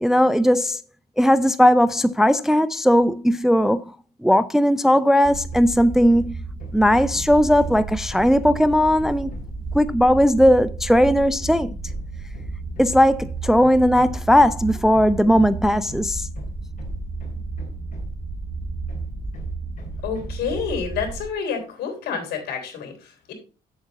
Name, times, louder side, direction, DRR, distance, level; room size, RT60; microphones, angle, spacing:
voice 1, 0.0-0.8 1.2-3.9 4.2-6.4 6.7-9.3 9.7-11.8 12.8-16.3, equal, ahead, 0.3 m, -18 dB
sound 1, 5.2-21.2, right 3 dB, 20° right, 2.3 m, -32 dB
Hammer, 5.5-5.8 6.1-9.7 11.4-18.3 18.9-20.8, left 2 dB, 50° left, 3.4 m, -45 dB
voice 2, 20.0-23.3, left 6 dB, 75° left, 3.6 m, -29 dB
8.2 x 7.4 x 4.0 m
cardioid pair, 110°, 17 cm